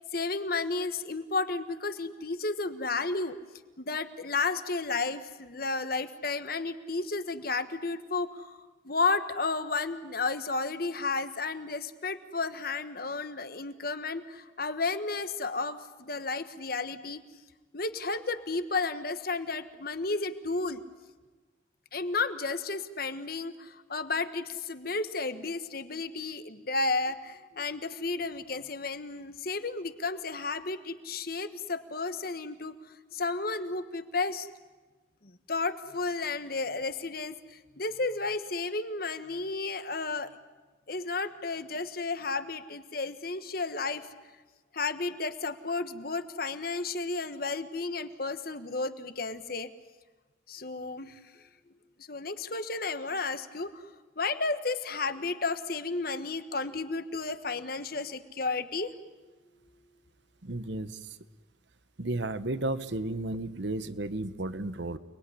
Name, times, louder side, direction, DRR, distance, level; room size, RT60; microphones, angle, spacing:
voice 1, 0.1-3.4 3.8-8.6 8.8-17.2 17.7-20.8 21.9-32.7 33.1-34.5 35.2-40.3 40.9-44.1 44.7-49.7 50.5-51.4 52.1-53.9 54.2-58.9, left 3 dB, 50° left, 11 dB, 1.3 m, -32 dB
voice 2, 60.4-61.0 62.0-65.0, right 2 dB, 65° right, 13 dB, 1.1 m, -33 dB
29.0 x 20.5 x 10.0 m, 1.3 s
head